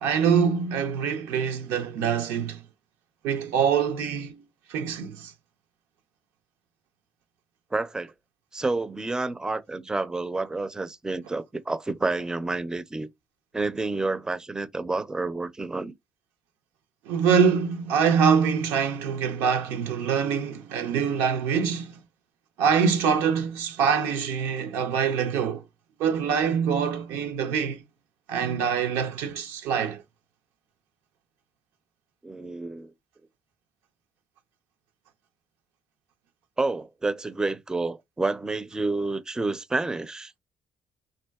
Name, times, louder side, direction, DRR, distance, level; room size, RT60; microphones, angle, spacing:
voice 1, 0.0-2.6 3.2-4.4 4.7-5.3 17.1-22.0 22.6-25.6 26.0-27.8 28.3-30.0, right 7 dB, 85° right, 0.5 m, -24 dB
voice 2, 7.7-8.1 8.5-13.1 13.5-15.9 32.2-32.9 36.6-40.3, right 3 dB, 15° right, 0.4 m, -29 dB
3.5 x 2.5 x 2.3 m
supercardioid pair, 65°, 4 cm